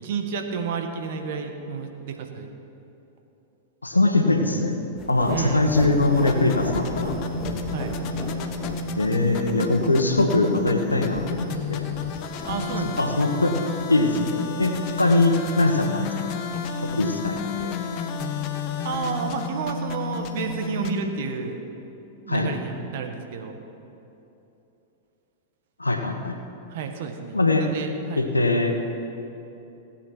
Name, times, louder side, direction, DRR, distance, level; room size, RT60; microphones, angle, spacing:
voice 1, 0.0-2.5 5.2-5.7 7.7-7.9 12.4-13.3 17.2-17.3 18.8-21.6 22.2-23.6 26.7-28.3, right 5 dB, 55° right, 5 dB, 1.5 m, -31 dB
voice 2, 3.8-4.8 5.1-7.1 9.0-11.8 13.0-13.5 13.9-14.7 15.0-16.1 17.0-17.7 22.3-22.5 25.8-26.4 27.3-27.7 28.2-28.8, left 2 dB, 90° left, 4 dB, 1.3 m, -22 dB
sound 1, 5.0-13.0, left 2 dB, 20° left, 2.2 m, -35 dB
sound 2, 6.0-21.0, left 4 dB, 45° left, 1.1 m, -31 dB
17.5 x 8.5 x 6.1 m, 2.9 s
figure-of-eight pair, 100°, 0 cm